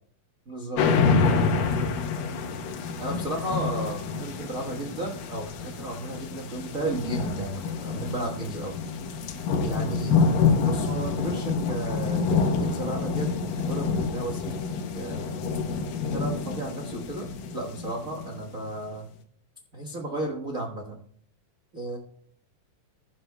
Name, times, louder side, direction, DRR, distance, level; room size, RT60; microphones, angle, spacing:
voice 1, 0.5-0.8 3.0-8.8 9.6-10.2 10.6-14.6 14.9-15.5 16.0-17.3 17.5-19.1 19.7-21.0 21.7-22.0, right 2 dB, 90° right, 1 dB, 0.7 m, -34 dB
sound 1, 0.8-18.6, left 5 dB, 85° left, 2.8 m, -27 dB
21.5 x 11.5 x 2.2 m, 0.62 s
omnidirectional pair, 3.9 m